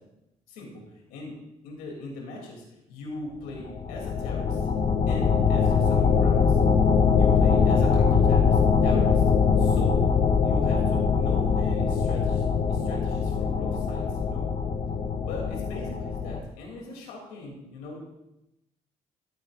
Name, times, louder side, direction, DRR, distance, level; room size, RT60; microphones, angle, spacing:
voice 1, 0.5-0.8 1.1-1.4 1.6-4.7 5.1-6.6 7.2-9.2 9.6-10.1 10.4-14.4 15.2-18.0, left 2 dB, 85° left, 0 dB, 2.8 m, -40 dB
sound 1, 3.6-16.4, left 6 dB, 50° left, 0.8 m, -22 dB
14.0 x 8.9 x 2.5 m, 0.89 s
supercardioid pair, 60°, 16 cm